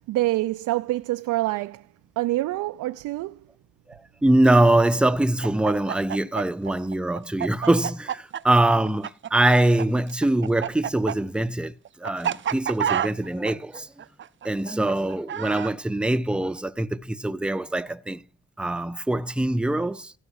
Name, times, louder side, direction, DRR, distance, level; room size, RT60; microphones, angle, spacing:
voice 1, 0.1-1.8 2.2-3.4, right 17 dB, 85° right, 0.6 m, -26 dB
voice 2, 3.9-13.9 14.4-18.2 18.6-20.1, right 1 dB, 5° right, 0.7 m, -23 dB
Chicken rooster, 5.4-9.8 10.1-15.7, right 9 dB, 40° right, 0.6 m, -29 dB
16.0 x 5.8 x 6.5 m
cardioid pair, 90°, 30 cm